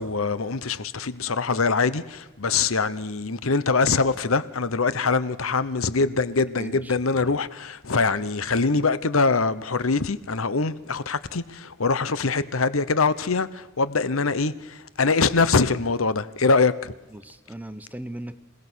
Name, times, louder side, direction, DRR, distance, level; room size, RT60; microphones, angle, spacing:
voice 1, 0.0-16.9, left 4 dB, 85° left, 1.0 m, -23 dB
voice 2, 6.6-7.3 17.1-18.4, right 1 dB, 10° right, 1.0 m, -38 dB
27.0 x 18.0 x 6.4 m
head